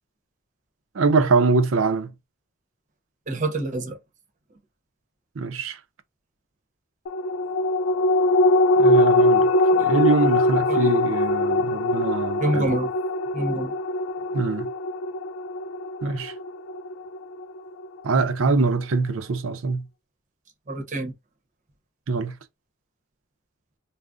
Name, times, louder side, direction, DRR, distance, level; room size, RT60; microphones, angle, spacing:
voice 1, 0.9-2.1 5.4-5.8 8.8-12.8 14.3-14.7 16.0-16.3 18.0-19.9 22.1-22.3, right 4 dB, 80° right, 0.5 m, -23 dB
voice 2, 3.3-4.0 10.7-10.9 12.4-12.9 13.3-13.7 20.7-21.1, right 1 dB, 40° right, 0.7 m, -26 dB
sound 1, 7.1-17.9 18.3-18.4, left 2 dB, 90° left, 0.4 m, -22 dB
2.4 x 2.0 x 3.6 m
head